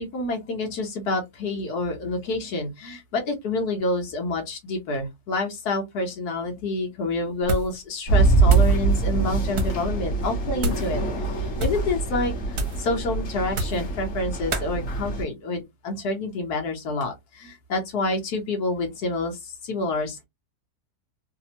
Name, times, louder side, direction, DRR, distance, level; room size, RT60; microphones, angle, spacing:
voice 1, 0.0-20.2, left 2 dB, 75° left, 1.4 m, -28 dB
sound 1, 7.4-7.8 8.1-8.8 9.5-9.8 10.6-10.9 11.5-11.9 12.5-12.9 13.5-13.9 14.5-14.7, equal, 70° right, 1.3 m, -29 dB
sound 2, 8.1-15.2, right 3 dB, 55° left, 1.3 m, -24 dB
3.3 x 2.0 x 2.7 m
omnidirectional pair, 1.7 m